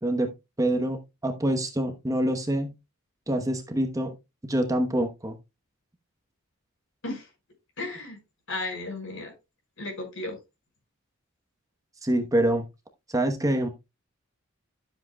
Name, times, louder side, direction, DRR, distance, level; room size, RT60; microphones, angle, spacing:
voice 1, 0.6-2.7 3.3-4.1 4.5-5.4 12.0-12.6 13.1-13.7, right 1 dB, 15° right, 1.0 m, -25 dB
voice 2, 7.8-8.2 8.5-9.3 9.8-10.4, left 2 dB, 60° left, 5.3 m, -34 dB
12.5 x 7.6 x 2.2 m
head